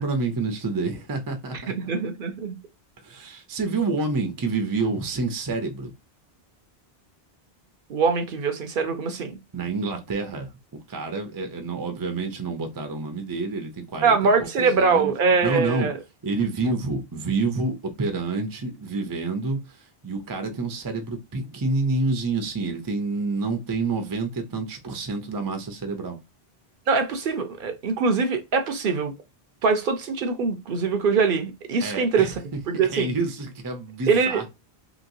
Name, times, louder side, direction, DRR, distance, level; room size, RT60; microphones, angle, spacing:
voice 1, 0.0-1.9 3.0-5.9 9.5-10.5 10.9-15.1 15.4-15.9 16.2-26.2 31.8-32.3 32.8-34.4, right 3 dB, 25° right, 0.5 m, -28 dB
voice 2, 1.5-2.6 7.9-9.3 14.0-15.9 26.9-29.1 29.6-32.4 32.7-33.1 34.1-34.4, right 5 dB, 65° right, 0.7 m, -23 dB
3.0 x 2.9 x 2.6 m
omnidirectional pair, 1.0 m